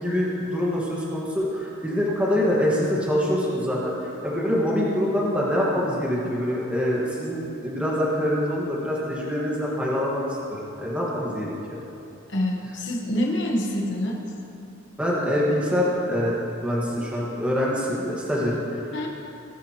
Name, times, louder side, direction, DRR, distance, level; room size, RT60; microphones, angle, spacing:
voice 1, 0.0-10.2 10.8-11.5 15.0-19.1, equal, 5° right, -6 dB, 1.6 m, -25 dB
voice 2, 12.3-14.2 18.9-19.1, left 1 dB, 60° left, -1 dB, 1.2 m, -26 dB
18.5 x 10.0 x 3.0 m, 2.7 s
head